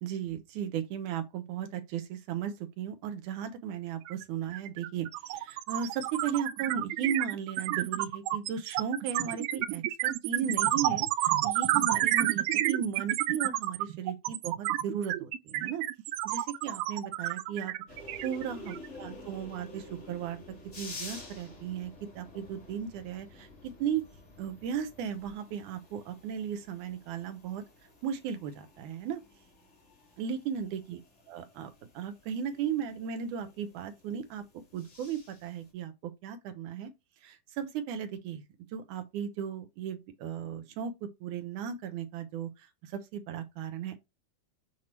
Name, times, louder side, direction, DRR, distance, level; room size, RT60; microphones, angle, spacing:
voice 1, 0.0-15.8 16.2-17.7 18.2-20.4 20.8-24.0 24.4-27.6 28.0-29.2 30.2-31.0 31.3-34.4 34.7-36.9 37.2-38.4 38.7-44.0, right 8 dB, 70° right, 2.0 m, -36 dB
sound 1, 4.1-4.2 4.5-18.9, right 15 dB, 90° right, 2.5 m, -30 dB
sound 2, 17.9-35.7, left 2 dB, 70° left, 0.6 m, -50 dB
7.3 x 4.6 x 3.0 m
omnidirectional pair, 4.3 m